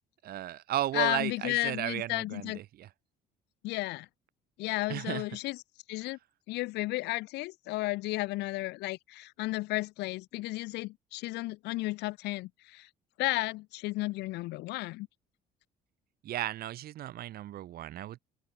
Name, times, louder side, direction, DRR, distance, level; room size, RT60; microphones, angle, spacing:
voice 1, 0.2-2.9 4.9-5.2 16.2-18.2, right 13 dB, 65° right, 1.3 m, -34 dB
voice 2, 0.9-2.6 3.6-4.1 4.6-5.6 5.9-6.2 6.5-12.9 13.2-15.1, left 20 dB, 85° left, 0.8 m, -33 dB
open air
cardioid pair, 110°, 17 cm